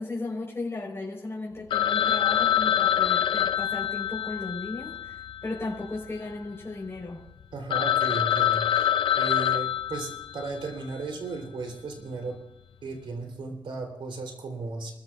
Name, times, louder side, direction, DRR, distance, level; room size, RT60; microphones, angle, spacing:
voice 1, 0.0-7.2, left 2 dB, 30° left, -3 dB, 4.5 m, -35 dB
Telephone, 1.7-6.1 6.3-6.4 7.0-7.1 7.4-7.5 7.7-10.7, left 10 dB, 85° left, 0.6 m, -25 dB
voice 2, 7.5-8.9 9.2-12.4 12.8-14.9, right 3 dB, 80° right, 3 dB, 3.6 m, -35 dB
28.0 x 14.5 x 2.5 m, 0.93 s
cardioid pair, 80°, 8 cm